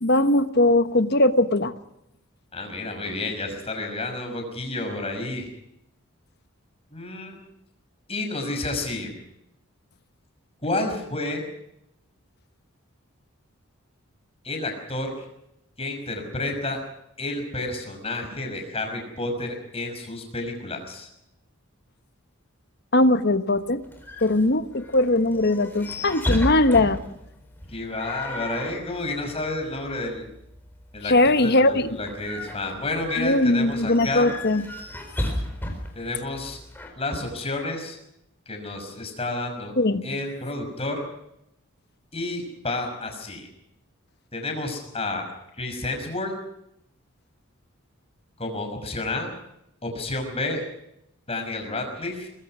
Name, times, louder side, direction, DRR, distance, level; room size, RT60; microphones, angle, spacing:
voice 1, 0.0-1.7 22.9-23.8 24.2-27.0 31.0-31.9 33.2-34.6 39.8-40.1, left 2 dB, 50° left, 10 dB, 1.2 m, -20 dB
voice 2, 2.5-5.5 6.9-7.4 8.1-9.1 10.6-11.4 14.4-15.3 15.8-16.8 17.2-21.1 27.7-30.3 30.9-34.3 36.0-36.6 37.0-38.0 38.5-39.8 40.0-41.0 42.1-43.5 44.3-45.2 45.6-46.3 48.4-49.3 49.8-50.6 51.3-52.3, left 2 dB, 25° left, 4 dB, 5.8 m, -30 dB
sound 1, 23.5-36.9, left 1 dB, 10° left, 4.3 m, -35 dB
24.0 x 21.0 x 6.2 m, 0.81 s
head